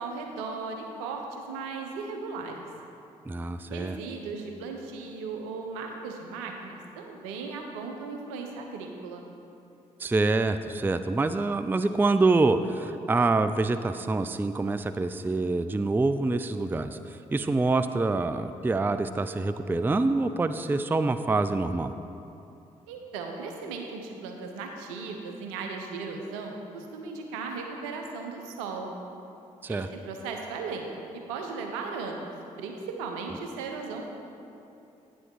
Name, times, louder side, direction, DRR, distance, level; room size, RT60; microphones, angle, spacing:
voice 1, 0.0-2.6 3.7-9.3 22.9-29.0 29.7-30.9 31.1-32.3 32.6-34.1, right 4 dB, 85° right, 3 dB, 0.7 m, -37 dB
voice 2, 3.3-4.0 10.0-21.9 29.6-29.9, right 3 dB, 10° right, 10 dB, 0.4 m, -26 dB
9.1 x 6.4 x 4.6 m, 2.7 s
hypercardioid pair, 40°, 17 cm